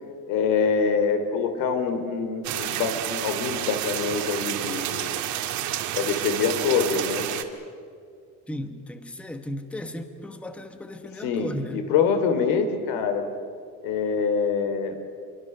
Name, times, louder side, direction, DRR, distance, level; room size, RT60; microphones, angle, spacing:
voice 1, 0.3-5.3 5.9-7.3 11.2-13.2 13.8-15.0, left 6 dB, 85° left, 8 dB, 3.1 m, -25 dB
sound 1, 2.4-7.4, right 12 dB, 55° right, 1.7 m, -30 dB
voice 2, 8.5-11.9, left 1 dB, 5° left, 8 dB, 1.0 m, -35 dB
26.5 x 23.0 x 6.7 m, 2.3 s
cardioid pair, 165°, 34 cm